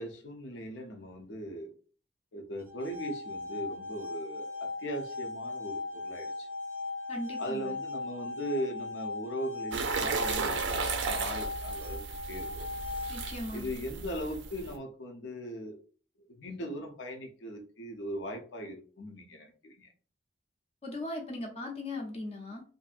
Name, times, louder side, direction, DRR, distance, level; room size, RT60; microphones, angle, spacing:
voice 1, 0.0-1.7 2.3-6.5 7.4-12.0 12.3-12.7 13.5-15.8 16.4-19.9, equal, 80° left, 3 dB, 0.7 m, -39 dB
sound 1, 2.6-13.6, left 3 dB, 15° right, 0.4 m, -38 dB
voice 2, 7.1-7.8 13.1-13.7 20.8-22.6, left 1 dB, 35° left, 2 dB, 0.6 m, -38 dB
sound 2, 9.7-14.7, right 5 dB, 75° right, 0.4 m, -35 dB
2.7 x 2.6 x 2.4 m, 0.40 s
head